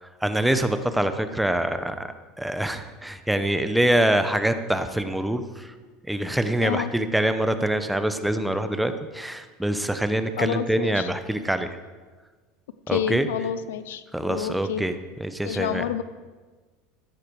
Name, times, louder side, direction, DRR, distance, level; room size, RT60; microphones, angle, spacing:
voice 1, 0.0-5.7 6.1-11.8 12.9-13.5 14.1-15.8, right 1 dB, 5° right, 9 dB, 1.0 m, -25 dB
voice 2, 10.4-10.9 12.9-14.0 14.3-14.8 15.4-16.0, left 10 dB, 85° left, 14 dB, 0.6 m, -28 dB
13.5 x 10.5 x 4.9 m, 1.4 s
hypercardioid pair, 95°, 0 cm